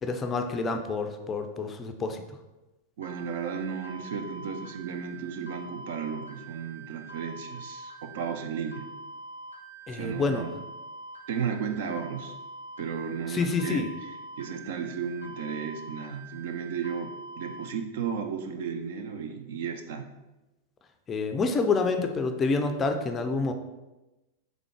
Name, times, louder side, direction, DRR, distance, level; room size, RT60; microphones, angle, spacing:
voice 1, 0.0-2.2 9.9-10.4 13.3-13.9 21.1-23.5, left 4 dB, 25° left, 6 dB, 0.4 m, -28 dB
voice 2, 3.0-8.8 9.9-10.6 11.3-12.3 12.8-13.9 14.4-20.1, right 6 dB, 55° right, 5 dB, 0.4 m, -34 dB
sound 1, 3.0-17.6, right 2 dB, 90° right, 0.7 m, -45 dB
3.6 x 3.6 x 3.4 m, 1.0 s
figure-of-eight pair, 90°, 0 cm